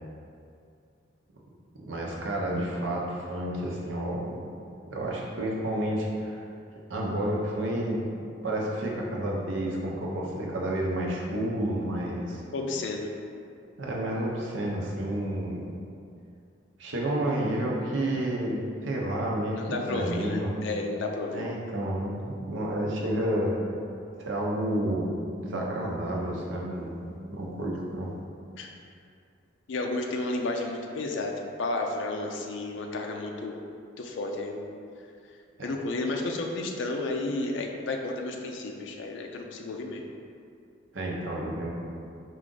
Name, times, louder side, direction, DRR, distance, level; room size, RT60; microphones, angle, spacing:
voice 1, 1.7-4.4 4.9-6.4 6.9-8.0 8.4-12.4 13.8-15.7 16.8-20.6 21.3-23.5 24.2-25.1 25.4-28.1 40.9-41.7, right 1 dB, 75° right, -3 dB, 0.7 m, -30 dB
voice 2, 12.5-13.1 19.6-21.5 28.6-28.7 29.7-33.6 34.0-34.7 35.6-40.0, left 2 dB, 70° left, 2 dB, 0.4 m, -32 dB
4.6 x 2.5 x 3.8 m, 2.4 s
head